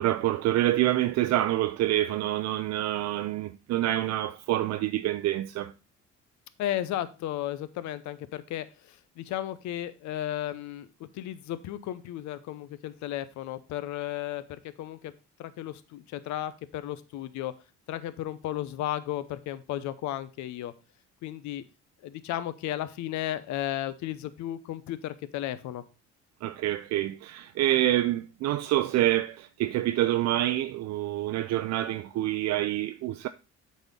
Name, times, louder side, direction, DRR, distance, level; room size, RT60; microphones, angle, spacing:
voice 1, 0.0-5.7 26.4-33.3, right 14 dB, 65° right, 0.5 m, -27 dB
voice 2, 6.6-14.4 14.8-15.1 15.4-17.5 17.9-20.7 21.2-21.6 22.0-25.8, left 12 dB, 75° left, 0.8 m, -34 dB
8.1 x 4.3 x 5.2 m
cardioid pair, 120°, 29 cm